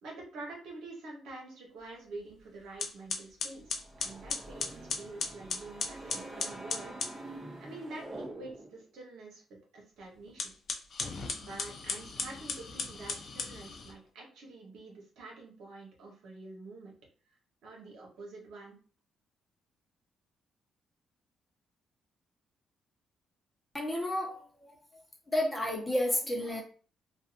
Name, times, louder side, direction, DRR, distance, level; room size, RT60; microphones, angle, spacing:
voice 1, 0.0-7.0 7.3-9.4 9.7-10.5 11.4-16.9 17.6-18.8, right 2 dB, 80° right, -1 dB, 1.0 m, -47 dB
sound 1, 2.3-2.4 2.8-7.2 10.3-14.0, left 4 dB, 55° left, 0.5 m, -37 dB
sound 2, 3.6-8.9, right 1 dB, 20° right, 0.8 m, -46 dB
voice 2, 23.7-24.7 25.3-26.6, left 1 dB, 15° left, 0 dB, 0.9 m, -31 dB
2.6 x 2.4 x 2.5 m, 0.39 s
cardioid pair, 90°, 0 cm